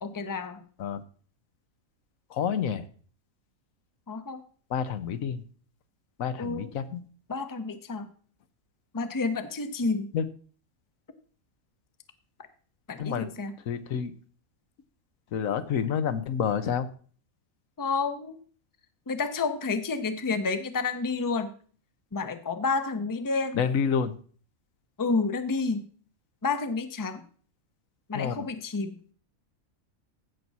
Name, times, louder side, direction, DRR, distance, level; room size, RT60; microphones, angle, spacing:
voice 1, 0.0-0.6 4.1-4.4 6.4-6.7 7.3-8.1 8.9-10.1 12.9-13.6 17.8-18.4 19.1-21.5 22.1-23.6 25.0-25.9 26.4-27.2 28.1-28.9, left 4 dB, 20° left, 9 dB, 0.7 m, -30 dB
voice 2, 2.3-2.8 4.7-5.4 6.2-7.0 10.1-10.3 13.0-13.3 13.7-14.1 15.3-16.9 23.5-24.1 28.1-28.5, left 7 dB, 80° left, 12 dB, 1.2 m, -28 dB
16.0 x 6.1 x 4.1 m, 0.43 s
omnidirectional pair, 1.4 m